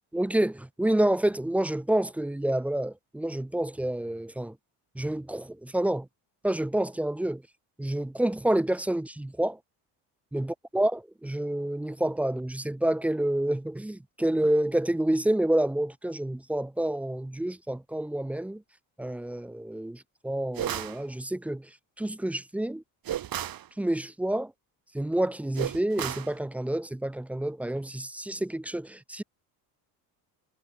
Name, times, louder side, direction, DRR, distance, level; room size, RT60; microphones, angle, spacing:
voice 1, 0.1-4.6 5.0-6.1 6.4-7.4 7.8-9.6 10.3-18.6 19.0-21.7 22.0-22.8 23.8-24.5 24.9-29.2, right 1 dB, 5° right, 0.3 m, -28 dB
sound 1, 20.6-21.0 23.1-23.7 25.6-26.3, right 11 dB, 45° right, 1.6 m, -32 dB
supercardioid pair, 80°, 47 cm